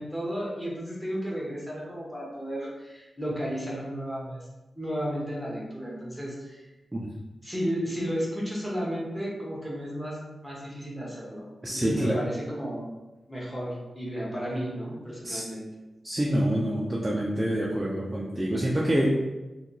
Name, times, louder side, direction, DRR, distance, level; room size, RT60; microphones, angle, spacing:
voice 1, 0.0-4.5 4.8-6.6 7.4-12.9 13.3-15.6, equal, 5° left, -5 dB, 0.7 m, -33 dB
voice 2, 11.6-12.2 15.2-15.4 16.0-19.2, equal, 15° right, -4 dB, 0.3 m, -26 dB
2.8 x 2.2 x 3.8 m, 1.1 s
wide cardioid pair, 175°, 0 cm